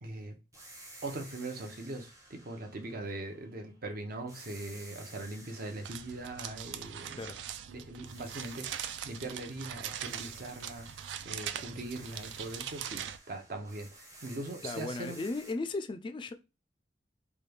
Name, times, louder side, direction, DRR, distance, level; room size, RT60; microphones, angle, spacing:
voice 1, 0.0-0.4 1.0-7.3 7.7-10.9 11.2-15.2, right 2 dB, 55° right, 0.7 m, -41 dB
sound 1, 0.5-3.8 4.3-7.6 8.0-15.5, right 1 dB, 20° right, 0.7 m, -54 dB
sound 2, 5.8-13.2, right 9 dB, 75° right, 0.3 m, -41 dB
voice 2, 14.6-16.3, left 3 dB, 25° left, 0.3 m, -36 dB
3.2 x 2.3 x 3.2 m
head